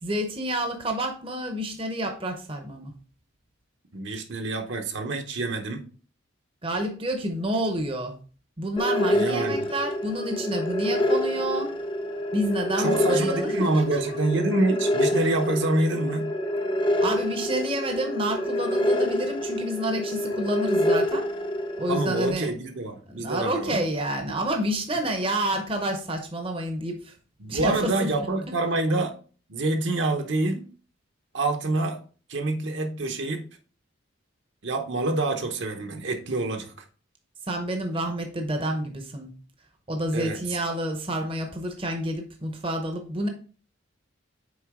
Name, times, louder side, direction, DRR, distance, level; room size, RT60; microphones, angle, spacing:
voice 1, 0.0-2.9 6.6-8.2 8.6-11.7 12.3-14.0 17.0-21.3 21.8-22.5 23.1-27.2 27.5-28.1 37.5-39.3 39.9-43.3, right 1 dB, 25° right, 0.7 m, -29 dB
voice 2, 3.9-5.8 9.1-9.7 12.8-16.3 21.9-23.9 27.4-29.1 29.5-30.7 31.3-32.0 32.3-33.4 34.6-36.7 40.1-40.4, right 2 dB, 65° right, 0.9 m, -26 dB
sound 1, 8.8-22.3, left 1 dB, 25° left, 0.5 m, -27 dB
6.3 x 4.4 x 3.6 m
head